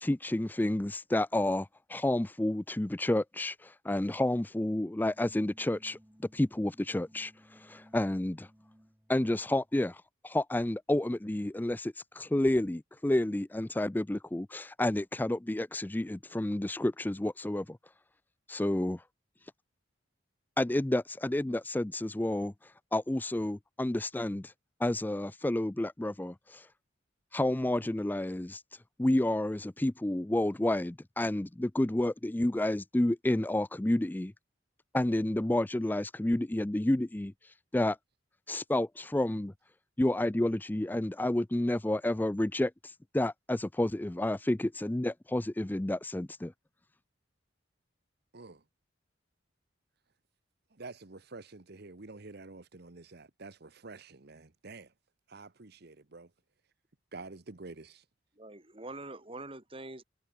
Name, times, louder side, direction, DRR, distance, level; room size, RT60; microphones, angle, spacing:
voice 1, 0.0-6.0 6.3-8.5 9.1-17.8 18.5-19.0 20.6-24.5 24.8-26.7 27.3-34.3 34.9-38.0 38.5-39.5 40.0-46.5, left 1 dB, 10° left, 0.4 m, -30 dB
sound 1, 5.0-9.7, equal, 10° right, 7.0 m, -61 dB
voice 2, 50.8-54.9 55.3-56.3 57.1-58.0, right 3 dB, 55° right, 1.2 m, -48 dB
voice 3, 58.4-60.0, right 2 dB, 30° right, 4.5 m, -44 dB
head